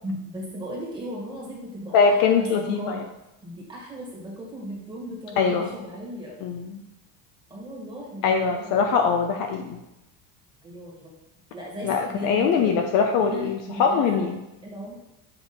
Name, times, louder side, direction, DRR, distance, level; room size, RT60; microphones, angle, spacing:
voice 1, 0.0-3.0 3.4-6.4 7.5-8.7 10.6-11.1 11.5-12.8 13.2-14.3 14.6-14.9, equal, 10° right, -4 dB, 1.9 m, -36 dB
voice 2, 1.9-3.0 5.4-5.7 6.4-6.8 8.2-9.8 11.8-14.4, left 5 dB, 50° left, 4 dB, 0.6 m, -22 dB
7.4 x 3.1 x 4.3 m, 0.93 s
cardioid pair, 140°, 43 cm